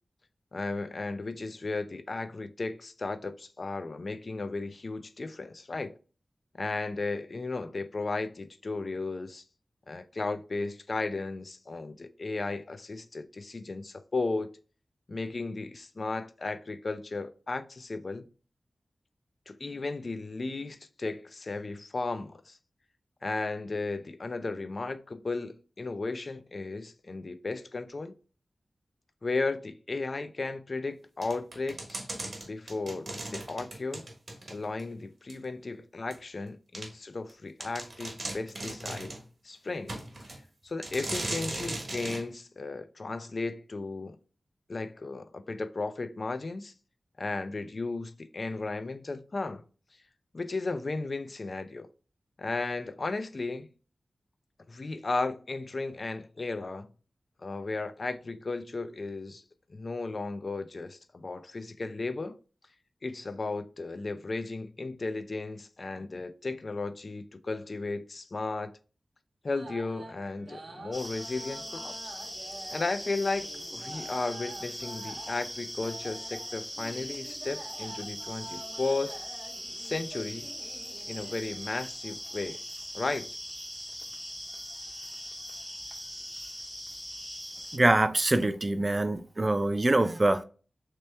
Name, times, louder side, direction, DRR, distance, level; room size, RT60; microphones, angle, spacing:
voice 1, 0.5-6.0 6.5-9.4 9.9-14.5 15.1-18.3 19.5-22.6 23.2-28.1 29.2-32.1 32.5-34.0 34.5-39.1 39.4-39.9 40.6-44.2 44.7-46.7 47.2-49.6 50.3-51.9 52.4-53.7 54.7-56.9 57.4-59.4 59.7-62.4 63.0-68.7 69.4-72.2 72.7-79.2 79.8-80.5 81.1-82.6 82.9-83.3, left 3 dB, 60° left, 0.4 m, -35 dB
sound 1, 31.2-34.9 35.3-35.4 36.1-36.2 36.7-36.9 37.3-37.4 37.6-39.2 39.9-40.4 40.8-42.2, right 2 dB, 70° right, 1.1 m, -38 dB
sound 2, 69.5-81.4, right 2 dB, 90° right, 0.8 m, -47 dB
sound 3, 70.9-87.8, equal, 10° left, 0.7 m, -41 dB
voice 2, 87.7-90.4, right 2 dB, 40° right, 0.4 m, -24 dB
3.1 x 2.9 x 3.3 m
cardioid pair, 50°, 0 cm